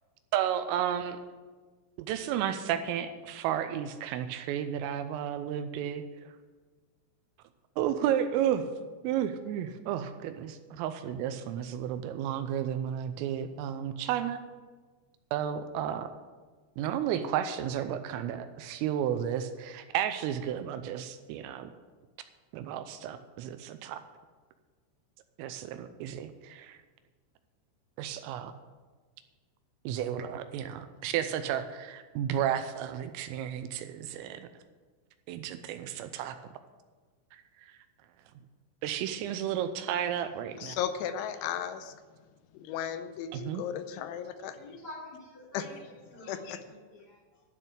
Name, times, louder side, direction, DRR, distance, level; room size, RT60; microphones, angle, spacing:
voice 1, 0.3-1.2 2.0-6.0 7.8-8.7 9.0-14.4 15.3-16.1 16.8-21.7 22.5-24.0 25.4-26.8 28.0-28.5 29.8-34.5 35.3-36.4 37.3-37.8 38.8-40.8 43.3-43.6, right 10 dB, 85° right, 9 dB, 3.2 m, -32 dB
voice 2, 40.6-41.9 42.5-44.6 45.5-45.7 46.3-46.6, left 9 dB, 80° left, 9 dB, 2.8 m, -35 dB
voice 3, 44.5-45.8 46.1-47.2, left 2 dB, 25° left, -11 dB, 2.7 m, -47 dB
12.0 x 6.7 x 8.8 m, 1.4 s
omnidirectional pair, 6.0 m